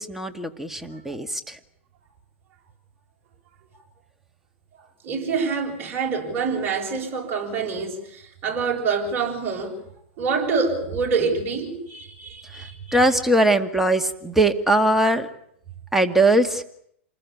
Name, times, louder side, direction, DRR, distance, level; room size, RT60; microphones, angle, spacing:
voice 1, 0.0-1.6 12.9-15.3 15.9-16.6, right 1 dB, 5° right, 2.1 m, -20 dB
voice 2, 5.0-9.8 10.2-13.0, right 5 dB, 35° right, 7.7 m, -26 dB
27.5 x 20.5 x 8.7 m
hypercardioid pair, 115°, 7 cm